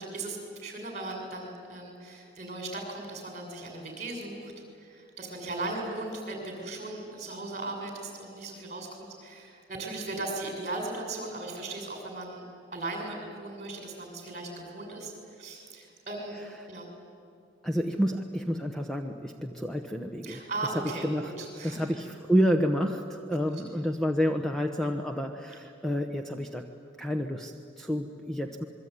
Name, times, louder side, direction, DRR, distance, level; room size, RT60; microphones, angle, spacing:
voice 1, 0.0-12.4 12.7-16.4 16.7-16.8 20.2-21.9, right 2 dB, 35° right, 2 dB, 6.7 m, -37 dB
voice 2, 17.6-20.5 21.0-21.3 21.6-26.7 27.0-28.6, equal, ahead, 4 dB, 1.0 m, -29 dB
27.0 x 22.5 x 9.7 m, 2.5 s
head